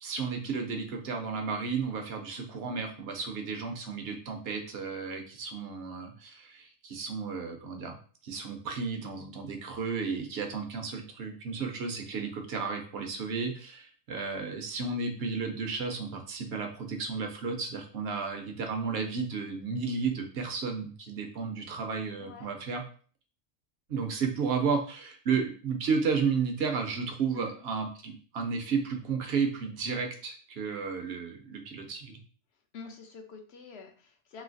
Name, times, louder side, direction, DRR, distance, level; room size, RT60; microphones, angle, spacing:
voice 1, 0.0-8.0 8.2-22.8 23.9-32.2, right 5 dB, 60° right, 4 dB, 0.8 m, -33 dB
voice 2, 22.2-22.5 27.3-27.6 32.7-34.4, left 5 dB, 65° left, 4 dB, 0.8 m, -47 dB
3.1 x 2.7 x 2.5 m, 0.42 s
omnidirectional pair, 1.2 m